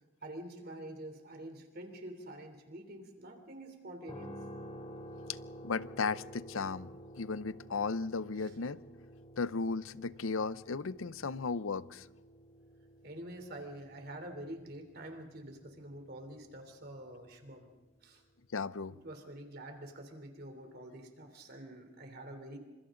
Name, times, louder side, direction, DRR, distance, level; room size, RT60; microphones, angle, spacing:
voice 1, 0.2-4.4 8.4-8.5 13.0-17.7 18.0-18.2 18.9-22.6, right 1 dB, 50° right, 3.4 m, -47 dB
sound 1, 4.1-18.1, equal, 30° left, 3.4 m, -52 dB
voice 2, 5.6-6.9 7.2-8.8 9.4-12.1 18.5-19.0, left 4 dB, 80° left, 0.6 m, -35 dB
28.0 x 26.5 x 3.9 m
head